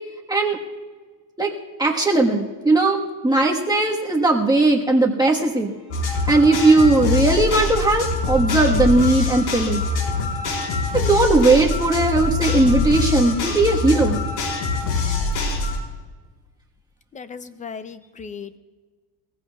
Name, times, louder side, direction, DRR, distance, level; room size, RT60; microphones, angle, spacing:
voice 1, 1.8-5.7 6.3-9.8 10.9-14.2, right 2 dB, 10° right, -1 dB, 1.4 m, -18 dB
sound 1, 5.9-15.8, left 3 dB, 70° left, 4.5 m, -24 dB
voice 2, 17.1-18.6, left 6 dB, 15° left, 12 dB, 0.5 m, -36 dB
22.0 x 15.5 x 2.4 m, 1.4 s
cardioid pair, 140°, 49 cm